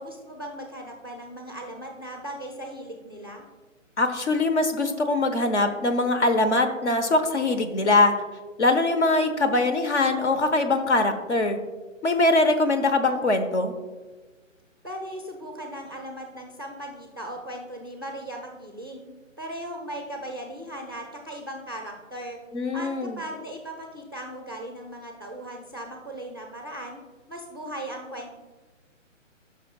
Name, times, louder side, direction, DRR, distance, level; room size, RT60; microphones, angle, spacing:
voice 1, 0.0-3.4 14.8-19.1 19.4-22.4 22.7-27.0 27.3-28.3, right 1 dB, 20° right, 1 dB, 0.4 m, -38 dB
voice 2, 4.0-8.1 8.6-11.6 12.0-13.7 22.5-23.2, left 2 dB, 60° left, 7 dB, 1.1 m, -22 dB
12.0 x 5.9 x 2.4 m, 1.3 s
figure-of-eight pair, 145°, 39 cm